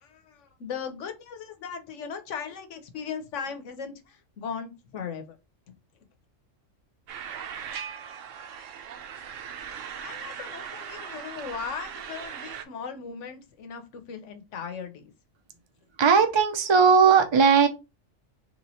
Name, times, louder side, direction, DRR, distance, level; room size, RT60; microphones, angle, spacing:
voice 1, 0.0-5.4 9.7-15.1, left 6 dB, 70° left, 8 dB, 1.1 m, -38 dB
sound 1, 7.1-12.6, right 8 dB, 80° right, 1.0 m, -39 dB
voice 2, 16.0-17.7, right 6 dB, 35° right, 6 dB, 0.4 m, -18 dB
3.3 x 3.0 x 4.1 m, 0.26 s
omnidirectional pair, 1.3 m